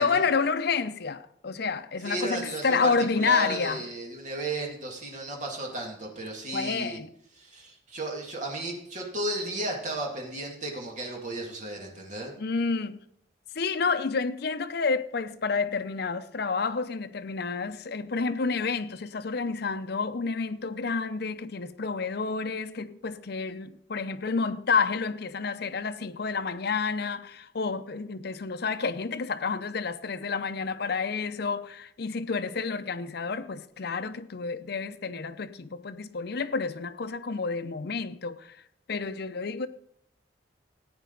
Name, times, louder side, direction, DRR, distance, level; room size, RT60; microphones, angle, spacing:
voice 1, 0.0-3.8 6.5-7.1 12.4-13.0 13.5-38.6 38.9-39.7, left 4 dB, 60° left, 0.6 m, -29 dB
voice 2, 2.0-7.0 7.4-12.3, right 2 dB, 45° right, 2.2 m, -34 dB
14.5 x 9.2 x 3.9 m
head